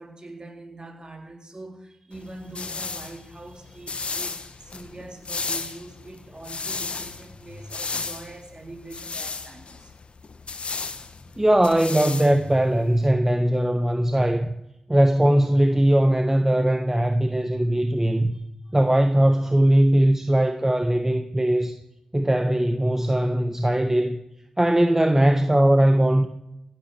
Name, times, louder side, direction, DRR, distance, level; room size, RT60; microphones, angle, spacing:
voice 1, 0.0-9.9 18.1-18.8, right 2 dB, 40° right, 3.9 m, -43 dB
sound 1, 2.1-13.1, left 4 dB, 60° left, 1.3 m, -35 dB
voice 2, 11.4-14.5 14.9-18.3 18.7-21.8 22.1-24.2 24.6-26.3, right 1 dB, 20° right, 1.2 m, -20 dB
15.5 x 9.2 x 6.9 m
cardioid pair, 40°, 2 cm